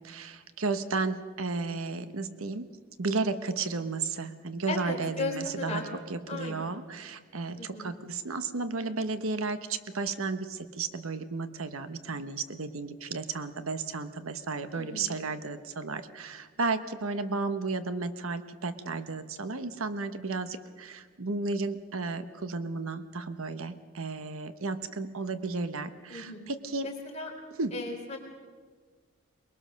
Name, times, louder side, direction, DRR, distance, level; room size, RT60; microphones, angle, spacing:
voice 1, 0.0-2.6 3.0-5.8 6.1-26.9 27.6-27.7, right 3 dB, 75° right, 10 dB, 1.1 m, -33 dB
voice 2, 4.7-5.8 6.3-6.8 7.6-7.9 14.7-15.1 26.1-26.5 26.8-27.3 27.7-28.2, left 3 dB, 30° left, 0 dB, 4.1 m, -36 dB
22.5 x 21.5 x 6.5 m, 1.5 s
head